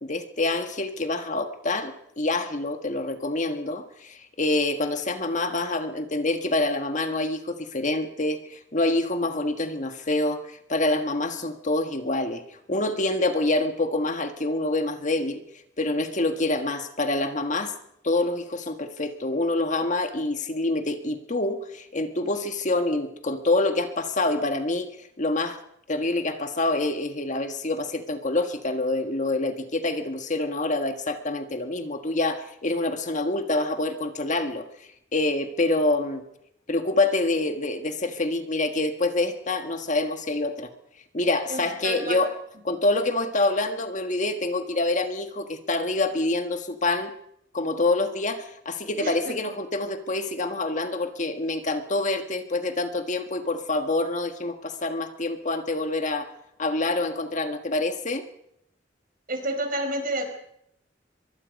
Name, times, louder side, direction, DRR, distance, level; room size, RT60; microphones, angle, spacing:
voice 1, 0.0-15.4 15.8-17.7 18.0-24.9 25.2-25.6 25.9-34.6 35.1-36.2 36.7-40.7 41.1-42.3 42.6-47.1 47.5-56.3 56.6-58.2, left 2 dB, 40° left, 7 dB, 1.5 m, -26 dB
voice 2, 41.5-42.2 49.0-49.4 59.3-60.3, right 1 dB, 50° right, 5 dB, 5.3 m, -30 dB
24.0 x 23.0 x 5.3 m, 0.76 s
head